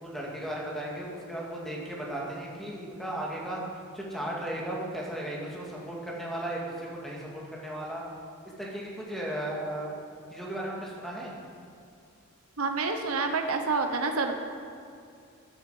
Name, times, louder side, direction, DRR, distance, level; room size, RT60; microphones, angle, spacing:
voice 1, 0.0-3.6 3.9-8.0 8.6-9.9 10.3-11.3, right 1 dB, ahead, -4 dB, 2.2 m, -35 dB
voice 2, 12.6-14.3, right 4 dB, 80° right, 5 dB, 1.0 m, -28 dB
12.5 x 11.5 x 5.0 m, 2.5 s
head